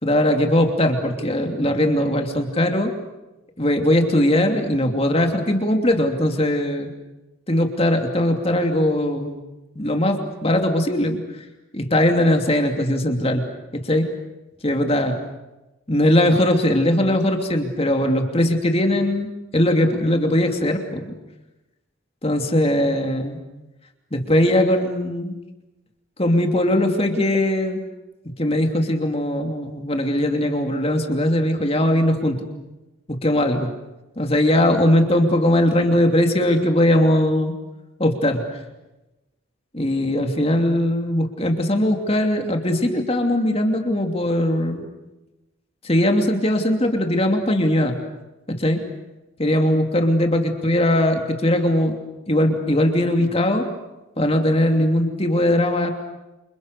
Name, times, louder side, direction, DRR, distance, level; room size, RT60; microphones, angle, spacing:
voice 1, 0.0-2.9 3.6-6.9 7.5-9.4 9.7-11.4 11.7-13.4 13.7-14.1 14.6-15.2 15.9-19.3 19.5-21.2 22.2-23.4 24.1-25.4 26.2-27.8 28.4-32.5 33.1-33.7 34.2-37.5 38.0-38.4 39.7-44.8 45.8-48.0 48.5-48.8 49.4-51.9 52.3-53.7 54.2-55.9, left 1 dB, 30° left, 4 dB, 2.8 m, -20 dB
29.0 x 27.5 x 6.8 m, 1.0 s
head